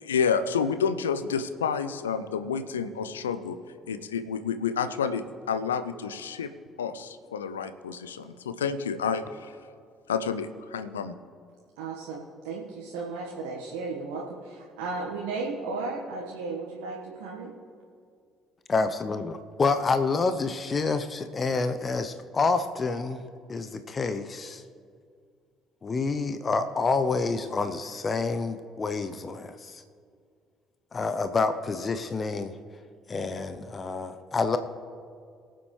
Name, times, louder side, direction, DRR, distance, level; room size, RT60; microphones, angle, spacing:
voice 1, 0.0-3.6 3.9-6.5 6.8-9.5 10.1-11.2, left 6 dB, 80° left, 11 dB, 0.5 m, -29 dB
voice 2, 11.8-17.5, right 3 dB, 70° right, -4 dB, 1.4 m, -35 dB
voice 3, 18.7-23.2 23.5-24.6 25.8-29.8 30.9-32.6 33.1-34.6, left 4 dB, 35° left, 10 dB, 0.7 m, -28 dB
23.0 x 7.8 x 3.2 m, 2.2 s
figure-of-eight pair, 50°, 0 cm